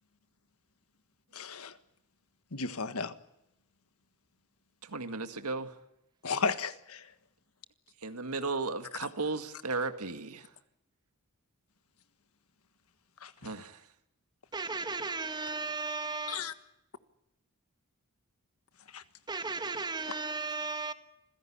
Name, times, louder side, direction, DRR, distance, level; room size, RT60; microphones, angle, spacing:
voice 1, 1.3-1.7 2.5-3.1 6.2-7.0 13.2-13.3 16.3-16.5 18.9-19.0, left 5 dB, 70° left, 1.5 m, -34 dB
voice 2, 4.8-5.8 8.0-10.5 13.4-13.9, right 3 dB, 85° right, 1.9 m, -35 dB
voice 3, 14.5-16.5 19.3-20.9, right 3 dB, 20° right, 1.5 m, -35 dB
27.0 x 16.5 x 8.7 m
head